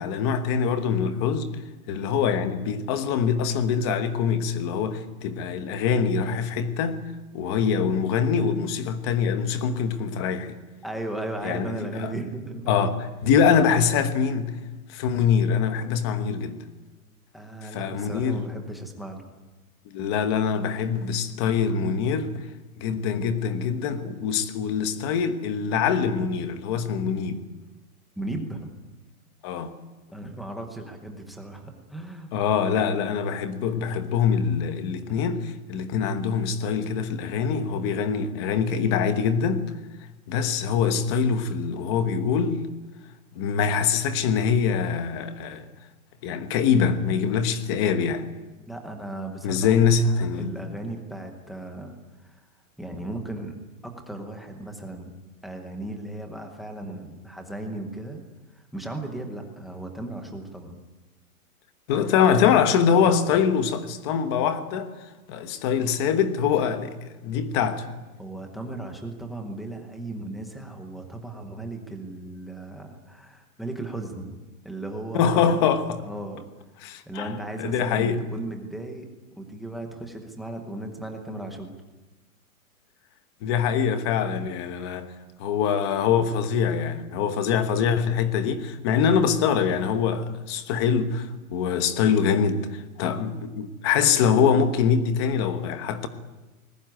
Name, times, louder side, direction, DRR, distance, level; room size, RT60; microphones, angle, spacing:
voice 1, 0.0-1.5 1.9-7.0 7.3-10.6 11.4-12.1 12.7-14.5 14.9-16.7 17.6-18.4 19.9-22.4 22.8-27.4 29.4-29.7 32.3-39.6 40.3-42.6 43.3-45.7 46.2-48.3 49.4-50.6 61.9-64.9 65.3-67.0 67.2-67.9 75.1-76.0 76.8-77.3 77.6-78.2 83.4-85.1 85.4-96.1, left 7 dB, 20° left, 1.2 m, -24 dB
voice 2, 10.8-12.7 17.3-19.2 28.2-28.7 30.1-32.3 48.7-49.9 50.3-52.0 52.2-52.4 52.8-53.6 53.8-55.1 55.4-58.2 58.6-60.8 68.2-74.4 74.6-75.7 76.0-76.4 77.1-79.0 79.4-81.7, right 2 dB, ahead, 0.8 m, -36 dB
28.0 x 20.5 x 9.2 m
hypercardioid pair, 180°, 44 cm